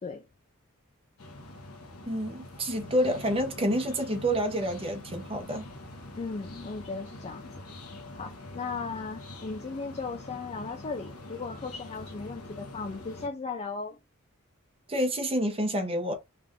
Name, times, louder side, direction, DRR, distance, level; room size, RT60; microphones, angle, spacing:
sound 1, 1.2-13.3, left 1 dB, 75° left, 1.0 m, -44 dB
voice 1, 2.0-5.7 14.9-16.1, equal, 25° right, 0.9 m, -28 dB
voice 2, 6.2-7.5 8.2-14.0, left 4 dB, 30° left, 0.4 m, -37 dB
3.4 x 2.5 x 3.6 m
head